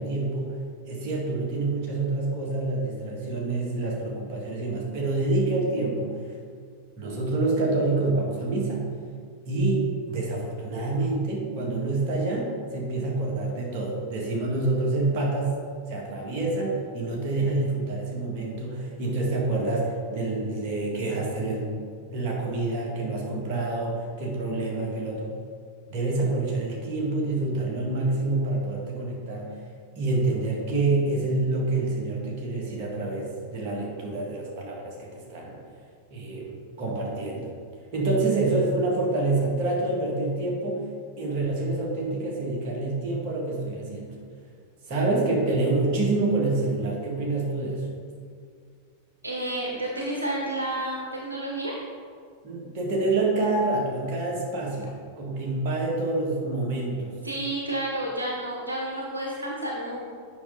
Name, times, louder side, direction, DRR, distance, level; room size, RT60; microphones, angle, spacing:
voice 1, 0.0-6.3 7.0-8.8 9.5-15.6 15.9-21.9 22.1-25.3 25.9-29.5 30.0-35.6 36.1-37.5 37.9-40.8 41.2-44.2 44.9-47.9 52.4-57.2, right 2 dB, 40° right, -3 dB, 1.9 m, -27 dB
voice 2, 49.2-51.8 57.2-60.0, right 1 dB, 80° right, -2 dB, 1.0 m, -30 dB
8.3 x 5.7 x 3.8 m, 2.1 s
figure-of-eight pair, 90°, 0 cm